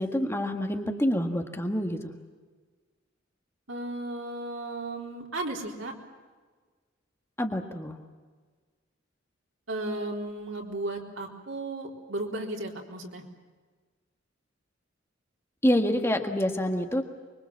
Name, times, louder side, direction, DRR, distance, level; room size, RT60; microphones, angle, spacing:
voice 1, 0.0-2.1 7.4-8.0 15.6-17.0, equal, 15° left, 4 dB, 1.7 m, -27 dB
voice 2, 3.7-5.9 9.7-13.2, right 2 dB, 90° right, 0 dB, 4.0 m, -35 dB
25.0 x 23.0 x 7.4 m, 1.4 s
head